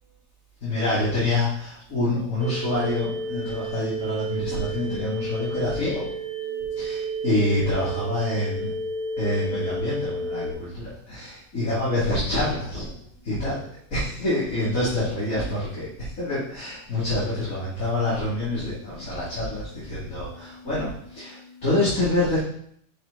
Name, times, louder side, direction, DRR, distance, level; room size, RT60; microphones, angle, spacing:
voice 1, 0.6-6.0 6.7-8.7 9.2-12.8 13.2-13.6 13.9-22.4, left 1 dB, 90° left, -11 dB, 3.3 m, -26 dB
sound 1, 2.4-10.5, right 2 dB, 20° left, 1.7 m, -31 dB
6.7 x 6.0 x 4.1 m, 0.67 s
omnidirectional pair, 1.4 m